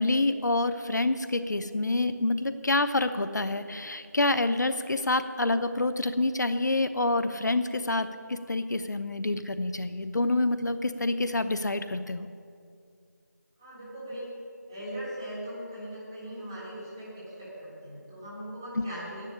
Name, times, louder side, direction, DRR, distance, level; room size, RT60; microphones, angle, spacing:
voice 1, 0.0-12.3, left 2 dB, 70° left, 11 dB, 0.8 m, -27 dB
voice 2, 13.6-14.3 14.7-19.2, equal, 10° right, -10 dB, 3.4 m, -39 dB
11.5 x 7.5 x 10.0 m, 2.3 s
figure-of-eight pair, 175°, 10 cm